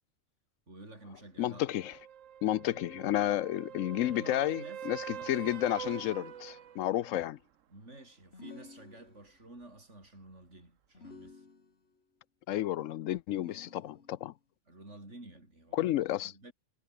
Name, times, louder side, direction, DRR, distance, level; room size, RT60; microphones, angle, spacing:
voice 1, 0.7-1.6 2.8-3.3 3.9-5.3 7.7-11.5 14.7-16.0 16.2-16.5, right 2 dB, 65° right, 6.7 m, -51 dB
voice 2, 1.4-1.9 2.4-7.4 12.5-14.3 15.7-16.3, left 13 dB, 85° left, 1.0 m, -31 dB
sound 1, 1.5-7.2 11.3-11.4, right 9 dB, 85° right, 1.3 m, -45 dB
sound 2, 5.7-6.9 8.3-9.5 10.9-12.0 13.4-14.4, left 4 dB, 55° left, 2.6 m, -53 dB
omnidirectional pair, 1.3 m